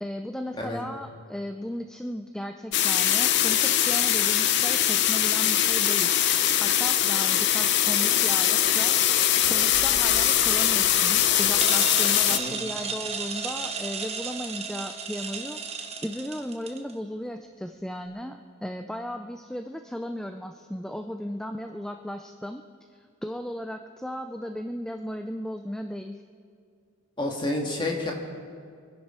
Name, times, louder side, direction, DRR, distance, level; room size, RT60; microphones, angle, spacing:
voice 1, 0.0-6.2 6.6-22.6 22.9-26.2, equal, 5° left, 6 dB, 0.4 m, -36 dB
sound 1, 2.7-12.4, left 11 dB, 55° left, 0.6 m, -22 dB
sound 2, 9.4-16.9, right 5 dB, 30° right, 0.9 m, -35 dB
voice 2, 27.2-28.1, left 2 dB, 20° left, 0 dB, 1.8 m, -29 dB
26.5 x 10.5 x 4.4 m, 2.2 s
head